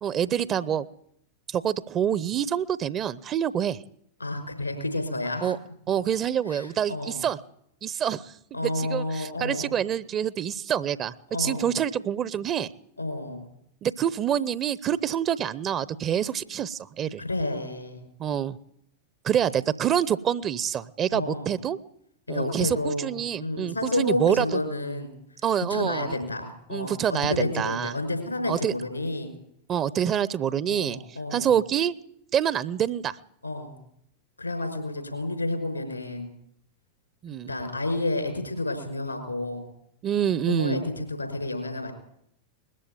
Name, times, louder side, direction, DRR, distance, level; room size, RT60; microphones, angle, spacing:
voice 1, 0.0-0.9 1.5-3.8 5.4-5.6 5.9-7.4 7.8-8.2 8.6-11.1 11.4-12.7 13.8-17.2 18.2-18.6 19.2-21.8 22.3-24.5 25.4-26.2 26.7-27.9 28.5-28.7 29.7-31.0 31.3-31.9 32.3-33.2 37.2-37.5 40.0-40.8, right 9 dB, 30° right, 19 dB, 0.8 m, -26 dB
voice 2, 4.2-5.6 6.5-7.2 8.5-9.7 11.3-11.7 13.0-13.5 17.2-18.0 21.1-21.5 22.3-23.1 23.4-25.1 25.7-29.3 30.7-31.5 33.4-33.8 34.4-36.3 37.5-39.7 40.5-41.9, left 2 dB, 85° left, 6 dB, 5.3 m, -30 dB
20.5 x 14.5 x 9.3 m, 0.73 s
figure-of-eight pair, 90°, 0 cm